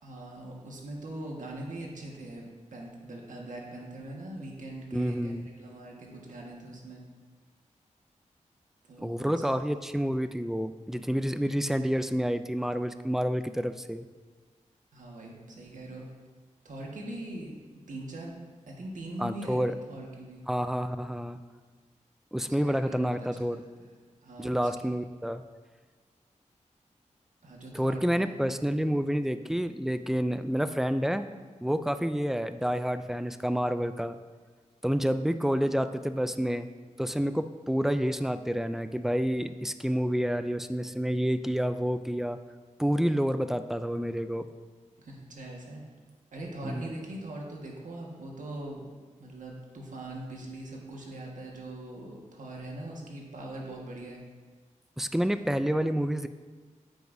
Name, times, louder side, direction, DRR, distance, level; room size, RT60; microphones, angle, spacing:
voice 1, 0.0-2.5 2.7-5.3 5.6-7.0 8.9-9.5 14.9-16.0 16.6-17.5 17.9-18.4 18.7-20.4 22.5-23.9 24.2-24.9 27.4-29.1 45.0-45.8 46.3-48.9 49.2-54.2, right 1 dB, 80° right, -1 dB, 1.5 m, -42 dB
voice 2, 4.9-5.5 9.0-14.1 19.2-19.8 20.5-21.4 22.3-23.6 24.4-25.4 27.7-31.3 31.6-34.2 34.8-36.7 37.0-42.4 42.8-44.5 46.6-46.8 55.0-56.3, equal, 5° right, 11 dB, 0.3 m, -29 dB
9.5 x 7.8 x 2.7 m, 1.4 s
wide cardioid pair, 120°, 13 cm